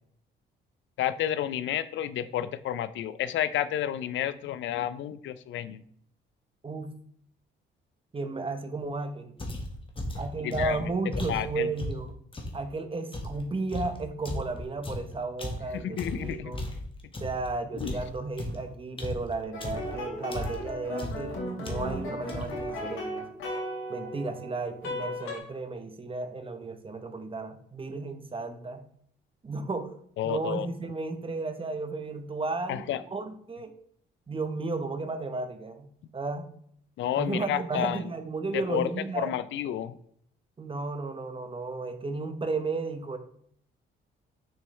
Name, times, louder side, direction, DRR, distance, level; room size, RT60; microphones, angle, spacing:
voice 1, 1.0-5.8 10.4-10.8 11.3-11.7 15.7-16.5 17.8-18.0 30.2-30.7 32.7-33.0 37.0-38.1 38.5-38.9 39.2-39.9, left 11 dB, 70° left, 15 dB, 0.5 m, -30 dB
voice 2, 8.1-9.4 10.1-12.2 12.5-16.7 17.2-23.2 23.9-28.8 29.4-29.9 30.2-32.8 33.1-33.8 34.3-36.5 37.2-39.3 40.6-43.2, right 3 dB, 25° right, 9 dB, 0.9 m, -34 dB
sound 1, 9.4-12.6 13.1-17.5 17.8-20.0 20.3-20.7 21.0-21.3 21.6-22.0 22.3-22.7, left 1 dB, 25° left, 1.6 m, -36 dB
sound 2, 19.5-25.4, left 1 dB, 90° left, 2.6 m, -36 dB
6.3 x 6.2 x 3.3 m, 0.65 s
cardioid pair, 90°, 20 cm